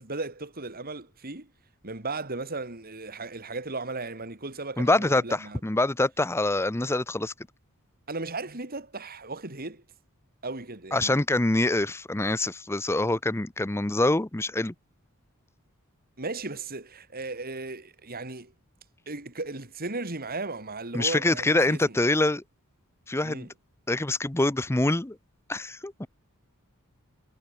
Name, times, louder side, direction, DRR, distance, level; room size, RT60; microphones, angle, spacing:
voice 1, 0.0-1.5 1.8-5.6 8.1-9.8 10.4-11.1 16.2-18.5 19.1-22.0 23.2-23.5, right 3 dB, 45° right, 3.2 m, -36 dB
voice 2, 4.8-7.3 10.9-14.7 20.9-22.4 23.1-23.5 23.9-25.2 25.5-26.1, left 2 dB, 10° left, 0.6 m, -25 dB
head